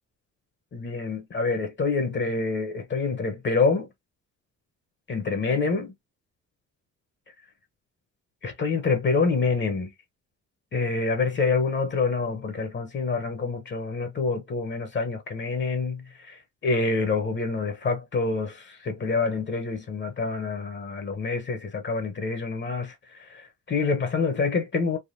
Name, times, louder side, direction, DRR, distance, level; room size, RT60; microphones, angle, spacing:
voice 1, 0.7-3.9 5.1-5.9 8.4-9.9 10.7-25.0, left 4 dB, 40° left, 0.8 m, -27 dB
3.5 x 2.1 x 2.5 m
cardioid pair, 90°, 30 cm